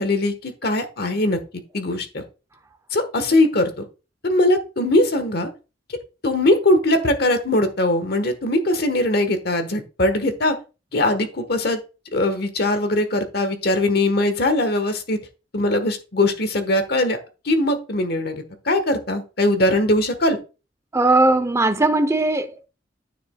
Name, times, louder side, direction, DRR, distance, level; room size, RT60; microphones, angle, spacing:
voice 1, 0.0-1.4 1.7-2.2 2.9-3.7 4.2-5.5 6.2-10.6 10.9-11.8 12.1-15.2 15.5-17.2 17.4-20.4, left 1 dB, 60° left, 1.3 m, -21 dB
voice 2, 20.9-22.7, right 2 dB, 15° right, 0.6 m, -18 dB
9.7 x 6.7 x 2.3 m
head